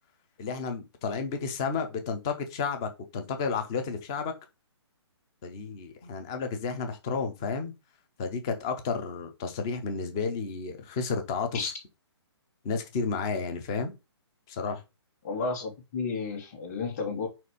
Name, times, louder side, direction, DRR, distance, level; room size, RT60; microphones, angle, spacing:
voice 1, 0.4-4.3 5.4-7.7 8.2-11.6 12.6-13.9 14.5-14.8, left 5 dB, 10° left, 0.3 m, -32 dB
voice 2, 15.2-17.3, left 4 dB, 25° left, 1.2 m, -32 dB
5.0 x 4.2 x 4.8 m
hypercardioid pair, 175°, 15 cm